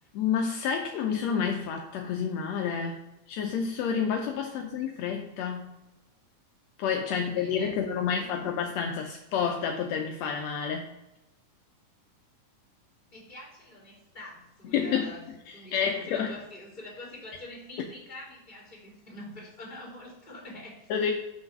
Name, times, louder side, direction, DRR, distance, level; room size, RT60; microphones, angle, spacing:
voice 1, 0.1-3.0 3.3-5.7 6.8-10.9 14.7-15.1 15.5-16.3 20.9-21.1, left 7 dB, 80° left, 3 dB, 1.5 m, -29 dB
voice 2, 7.2-8.3 13.1-15.2 15.5-21.1, left 1 dB, 15° left, -7 dB, 3.0 m, -46 dB
6.4 x 4.8 x 5.9 m, 0.95 s
omnidirectional pair, 3.6 m